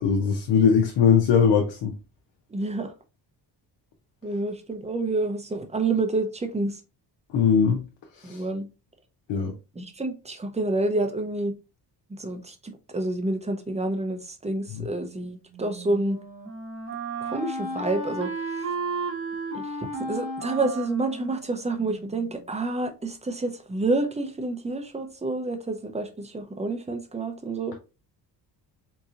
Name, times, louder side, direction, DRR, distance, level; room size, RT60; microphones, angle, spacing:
voice 1, 0.0-1.9 7.3-7.8 8.2-8.4 9.3-9.5 14.7-14.9, left 6 dB, 80° left, 0.7 m, -20 dB
voice 2, 2.5-2.9 4.2-6.8 8.2-8.7 9.7-11.6 12.1-16.2 17.2-18.3 19.5-19.7 20.1-27.8, right 2 dB, 15° right, 0.6 m, -28 dB
Wind instrument woodwind instrument, 15.5-22.4, right 3 dB, 30° right, 1.5 m, -34 dB
3.7 x 2.9 x 2.4 m
cardioid pair, 90°, 43 cm